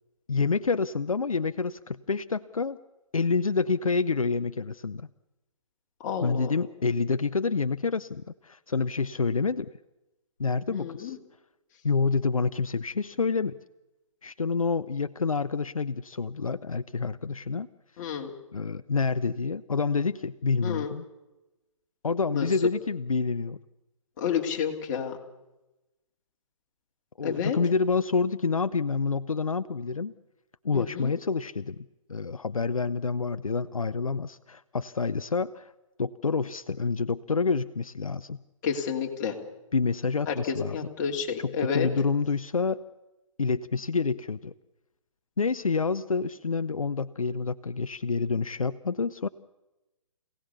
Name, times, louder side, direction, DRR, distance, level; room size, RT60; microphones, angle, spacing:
voice 1, 0.3-2.8 3.1-5.1 6.2-9.7 10.4-11.2 11.8-13.6 14.2-17.7 18.5-21.0 22.0-23.6 27.2-30.1 30.6-35.7 36.0-38.4 39.7-40.8 41.4-42.8 43.4-44.5 45.4-49.3, left 4 dB, 80° left, 13 dB, 0.7 m, -28 dB
voice 2, 6.0-6.5 10.7-11.2 18.0-18.3 20.6-20.9 22.3-22.5 24.2-25.2 27.2-27.6 30.7-31.1 38.6-39.4 40.3-41.9, left 7 dB, 30° left, 2 dB, 2.8 m, -30 dB
27.0 x 17.5 x 7.0 m, 1.0 s
figure-of-eight pair, 135°, 18 cm